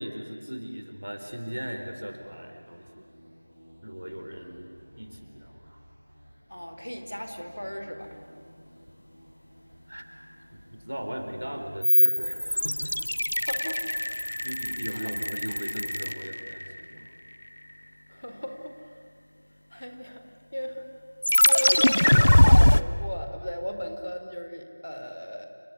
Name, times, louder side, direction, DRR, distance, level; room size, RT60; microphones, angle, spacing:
voice 1, 0.0-3.0 3.8-4.7 5.0-5.8 9.9-10.0 10.5-13.0 14.4-17.1, equal, 60° right, 5 dB, 4.3 m, -38 dB
sound 1, 1.1-14.8, equal, ahead, 3.3 m, -53 dB
voice 2, 6.5-8.1 13.4-14.0 14.9-15.1 18.1-18.8 19.7-20.2 20.5-20.9 21.5-25.5, equal, 85° left, 5 dB, 4.4 m, -36 dB
sound 2, 11.8-16.8 21.2-22.8, left 1 dB, 50° left, 0.7 m, -21 dB
28.0 x 20.5 x 9.8 m, 2.1 s
figure-of-eight pair, 180°, 0 cm